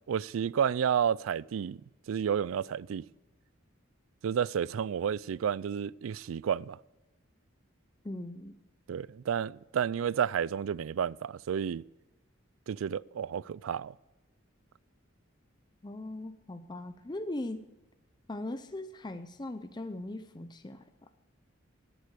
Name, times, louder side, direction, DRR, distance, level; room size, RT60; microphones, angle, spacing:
voice 1, 0.1-1.8 2.1-3.0 4.2-6.8 8.9-11.8 12.7-13.9, right 8 dB, 85° right, 0.4 m, -31 dB
voice 2, 8.0-8.6 15.8-17.6 18.3-20.9, left 1 dB, 20° left, 0.6 m, -39 dB
18.0 x 8.1 x 6.7 m
head